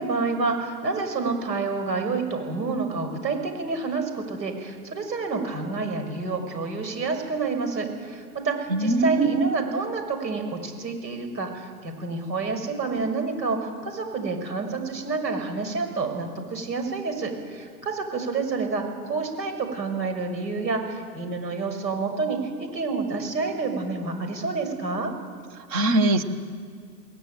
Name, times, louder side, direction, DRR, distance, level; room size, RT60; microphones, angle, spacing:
voice 1, 0.0-25.1, right 4 dB, 90° right, 6 dB, 6.4 m, -28 dB
voice 2, 8.7-9.5 25.7-26.2, right 2 dB, 20° right, 10 dB, 1.0 m, -21 dB
20.5 x 20.0 x 9.4 m, 2.1 s
hypercardioid pair, 160°, 50 cm